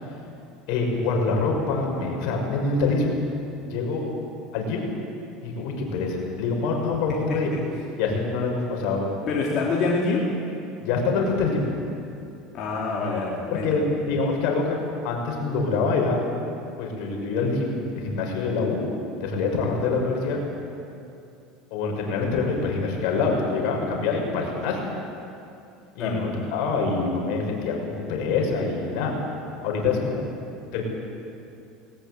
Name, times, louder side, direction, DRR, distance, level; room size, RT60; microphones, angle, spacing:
voice 1, 0.7-3.2 3.7-4.0 4.5-4.8 5.4-7.5 8.0-9.1 10.8-11.7 13.6-16.2 16.8-18.8 19.2-20.4 21.7-24.8 25.9-29.1 29.6-30.2 30.7-30.8, left 4 dB, 70° left, 1 dB, 5.9 m, -25 dB
voice 2, 9.3-10.2 12.5-13.7 26.0-26.2, left 4 dB, 50° left, -5 dB, 4.0 m, -25 dB
20.0 x 19.0 x 8.3 m, 2.6 s
supercardioid pair, 110°, 0 cm